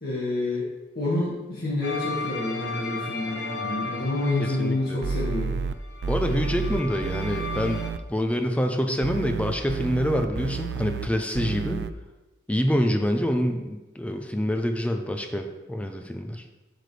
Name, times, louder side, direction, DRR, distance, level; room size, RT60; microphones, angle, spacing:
voice 1, 0.0-0.6 1.0-5.5, left 2 dB, 60° left, -8 dB, 1.9 m, -28 dB
sound 1, 1.8-7.9, left 3 dB, 90° left, 0.8 m, -35 dB
voice 2, 4.4-5.0 6.1-11.8 12.5-16.4, equal, 10° left, 5 dB, 0.5 m, -26 dB
sound 2, 5.0-5.7 6.0-8.0 9.0-11.1 11.3-11.9, right 5 dB, 75° right, 0.4 m, -30 dB
7.7 x 6.8 x 3.3 m, 1.1 s
head